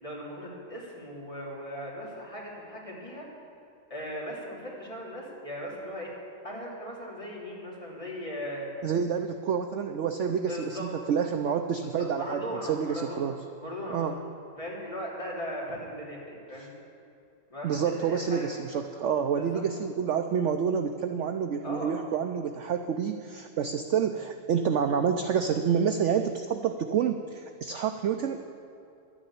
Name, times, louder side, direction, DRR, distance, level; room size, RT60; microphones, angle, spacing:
voice 1, 0.0-3.3 3.9-6.1 6.4-8.7 10.5-10.9 11.9-13.3 13.6-14.1 14.6-16.7 17.5-18.5 19.3-19.6 21.6-21.9, equal, 20° left, -5 dB, 3.2 m, -38 dB
voice 2, 8.8-12.4 12.7-13.4 13.9-14.1 17.6-28.4, right 7 dB, 70° right, 7 dB, 0.7 m, -28 dB
11.5 x 9.9 x 8.6 m, 2.6 s
omnidirectional pair, 1.9 m